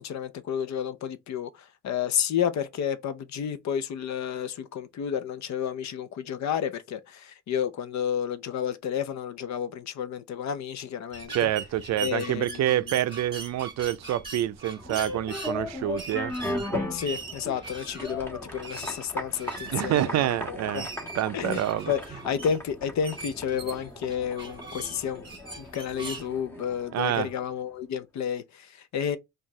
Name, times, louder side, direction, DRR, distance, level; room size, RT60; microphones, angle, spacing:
voice 1, 0.0-11.5 12.0-13.0 16.9-20.9 21.3-25.2 25.6-29.2, left 8 dB, 65° left, 0.6 m, -31 dB
sound 1, 11.1-26.3, right 4 dB, 15° right, 1.5 m, -41 dB
voice 2, 11.3-16.3 19.7-20.9 21.1-21.9 26.9-27.3, right 12 dB, 60° right, 0.5 m, -27 dB
sound 2, 14.8-27.5, left 1 dB, 10° left, 1.2 m, -37 dB
4.6 x 2.5 x 3.1 m
cardioid pair, 90°, 30 cm